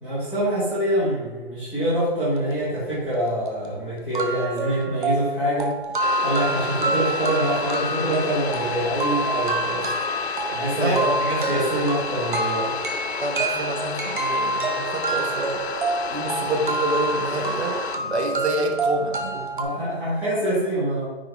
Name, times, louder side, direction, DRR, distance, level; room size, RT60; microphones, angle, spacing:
voice 1, 0.0-5.7 6.2-9.8 10.5-12.7 19.5-21.1, right 1 dB, 5° right, -12 dB, 1.4 m, -25 dB
sound 1, 3.2-3.3 3.6-3.7 4.1-19.6, right 3 dB, 50° right, 1.0 m, -27 dB
sound 2, 6.0-18.0, left 5 dB, 80° left, 0.8 m, -31 dB
voice 2, 10.8-11.3 13.2-15.6 16.1-19.5, right 2 dB, 85° right, 3 dB, 1.2 m, -28 dB
9.6 x 3.8 x 3.5 m, 1.2 s
hypercardioid pair, 170°, 32 cm